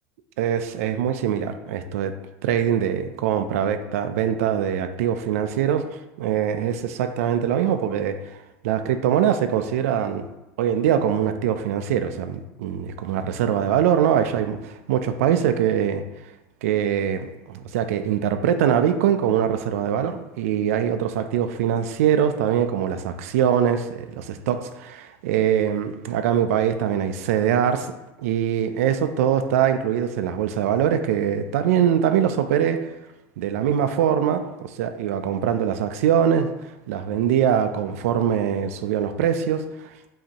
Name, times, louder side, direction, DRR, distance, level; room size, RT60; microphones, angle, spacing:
voice 1, 0.4-2.2 2.4-5.9 6.2-8.2 8.6-10.3 10.6-16.0 16.6-27.9 28.2-32.8 33.4-36.5 36.9-40.1, right 9 dB, 90° right, 9 dB, 0.4 m, -23 dB
5.1 x 2.8 x 2.8 m, 0.99 s
supercardioid pair, 160°, 8 cm